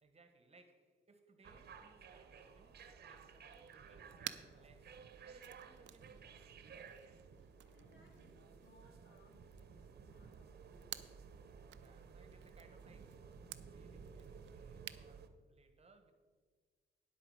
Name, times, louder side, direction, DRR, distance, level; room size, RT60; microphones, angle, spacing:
voice 1, 0.0-7.2 11.8-13.3 13.7-16.1, right 3 dB, 30° right, 1.2 m, -67 dB
sound 1, 1.4-15.3, right 6 dB, 55° right, 0.9 m, -56 dB
sound 2, 1.8-8.2, left 1 dB, 85° left, 1.9 m, -74 dB
sound 3, 3.1-15.1, right 12 dB, 70° right, 0.5 m, -55 dB
voice 2, 7.7-11.2, left 1 dB, 70° left, 3.2 m, -68 dB
10.0 x 7.9 x 4.8 m
cardioid pair, 90°, 20 cm